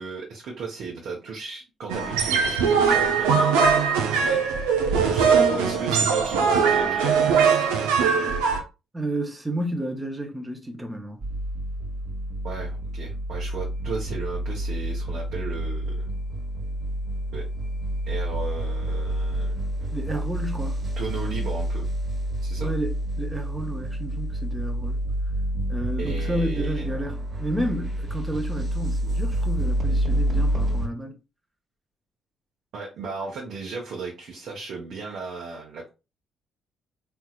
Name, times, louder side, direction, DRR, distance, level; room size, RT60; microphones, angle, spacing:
voice 1, 0.0-3.5 4.1-4.4 5.0-8.1 12.4-16.1 17.3-17.4 18.1-20.2 21.0-21.9 22.4-22.7 26.0-27.0 32.7-35.9, right 4 dB, 55° right, 1.1 m, -35 dB
sound 1, 1.9-8.6, right 6 dB, 70° right, 0.7 m, -21 dB
voice 2, 8.9-11.3 19.9-20.8 22.6-25.0 25.7-31.2, right 1 dB, 15° right, 1.1 m, -31 dB
sound 2, 11.2-30.9, right 1 dB, 35° right, 1.3 m, -28 dB
4.2 x 3.5 x 2.4 m
figure-of-eight pair, 45°, 0 cm